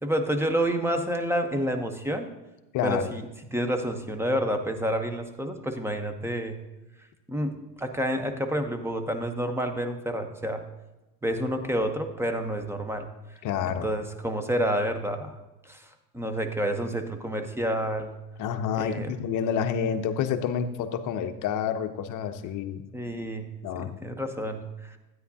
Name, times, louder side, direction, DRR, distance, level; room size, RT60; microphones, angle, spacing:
voice 1, 0.0-2.3 2.8-3.2 3.5-6.6 7.3-7.5 7.8-10.6 11.2-13.1 13.7-15.4 15.7-15.9 16.1-18.1 18.8-19.1 22.9-23.5 23.8-24.6, equal, 5° right, 7 dB, 0.8 m, -29 dB
voice 2, 13.4-13.9 18.4-22.8 23.6-23.9, left 8 dB, 40° left, 8 dB, 0.9 m, -28 dB
12.5 x 9.5 x 2.8 m, 1.0 s
hypercardioid pair, 95°, 48 cm